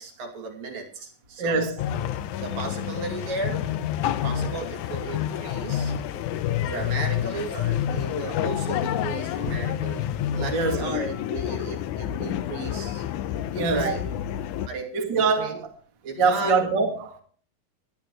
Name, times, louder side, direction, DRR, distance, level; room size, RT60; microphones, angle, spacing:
voice 1, 0.0-1.7 2.4-3.8 4.2-5.9 6.6-10.0 10.3-13.1 13.6-14.0 14.7-15.6 16.0-16.6, right 3 dB, 70° right, 4.4 m, -35 dB
voice 2, 1.4-1.8 10.5-11.0 13.5-14.0 14.9-15.6 16.2-17.2, right 4 dB, 35° right, 2.2 m, -24 dB
sound 1, 1.8-14.7, left 10 dB, 75° left, 1.8 m, -28 dB
22.5 x 10.5 x 3.2 m
omnidirectional pair, 4.2 m